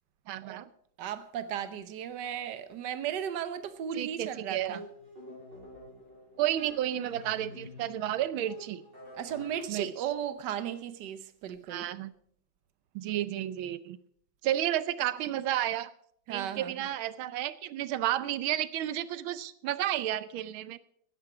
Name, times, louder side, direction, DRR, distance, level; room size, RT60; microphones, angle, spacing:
voice 1, 0.3-0.7 4.0-4.8 6.4-8.8 9.7-10.1 11.7-12.1 12.9-14.0 14.4-15.9 16.3-20.8, right 12 dB, 85° right, 1.5 m, -32 dB
voice 2, 1.0-4.8 9.2-11.9 16.3-16.9, right 9 dB, 65° right, 1.5 m, -36 dB
sound 1, 4.3-9.6, left 1 dB, 25° right, 7.7 m, -49 dB
16.0 x 11.0 x 4.8 m
omnidirectional pair, 2.2 m